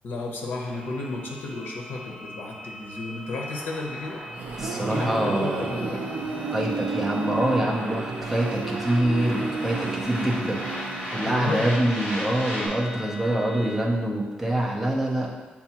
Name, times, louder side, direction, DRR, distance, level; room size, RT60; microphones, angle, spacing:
voice 1, 0.0-4.2 4.7-6.1 11.2-11.8, left 2 dB, 75° left, 0 dB, 0.7 m, -33 dB
sound 1, 0.7-13.8, left 1 dB, 25° left, 1.3 m, -41 dB
sound 2, 3.3-12.7, equal, 45° left, 1.5 m, -38 dB
sound 3, 4.0-11.7, right 4 dB, 60° right, 0.5 m, -32 dB
voice 2, 4.6-5.8 6.5-10.7 11.1-15.3, right 1 dB, 5° right, -3 dB, 0.6 m, -25 dB
6.9 x 2.3 x 2.8 m, 1.3 s
wide cardioid pair, 175°, 3 cm